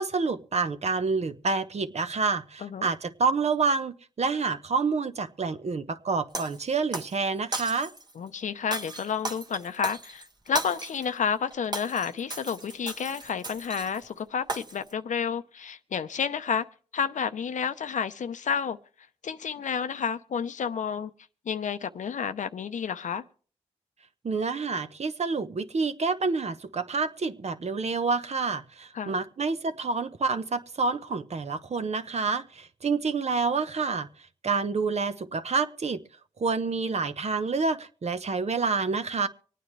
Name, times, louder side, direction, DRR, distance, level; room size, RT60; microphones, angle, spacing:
voice 1, 0.0-7.9 24.2-34.1 34.4-36.0 36.4-39.3, right 4 dB, 60° right, 1.0 m, -28 dB
Shatter, 6.3-7.2 7.5-8.1 8.7-11.1 11.5-14.0 14.5-14.9, right 2 dB, 30° right, 1.3 m, -36 dB
voice 2, 8.2-16.7 16.9-18.8 19.2-21.1 21.5-23.2 28.9-29.1, left 7 dB, 75° left, 0.7 m, -30 dB
25.0 x 9.3 x 3.3 m
cardioid pair, 55°, 13 cm